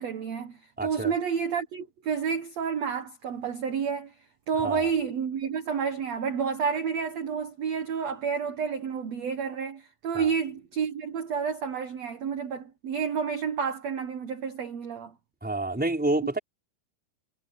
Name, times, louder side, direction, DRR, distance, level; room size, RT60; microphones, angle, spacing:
voice 1, 0.0-4.1 4.5-15.1, right 6 dB, 80° right, 1.5 m, -30 dB
voice 2, 0.8-1.1 4.6-4.9 10.1-10.3 15.4-16.4, right 2 dB, ahead, 4.0 m, -28 dB
omnidirectional pair, 5.0 m